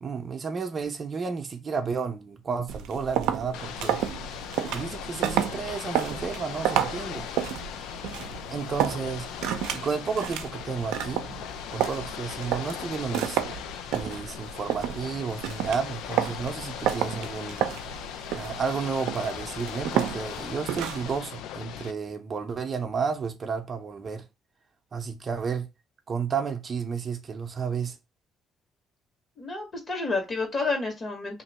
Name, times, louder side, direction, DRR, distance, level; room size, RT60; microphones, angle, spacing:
voice 1, 0.0-4.0 4.7-7.3 8.5-9.3 9.7-11.2 11.7-13.4 13.9-17.7 18.3-24.3 24.9-25.7 26.1-28.0, right 5 dB, 40° right, 0.6 m, -32 dB
sound 1, 2.7-21.2, right 10 dB, 90° right, 0.4 m, -31 dB
Ocean / Boat Water vehicle, 3.5-21.9, left 9 dB, 85° left, 0.4 m, -38 dB
voice 2, 29.4-31.4, left 3 dB, 40° left, 1.7 m, -30 dB
2.9 x 2.7 x 4.1 m
cardioid pair, 90°, 0 cm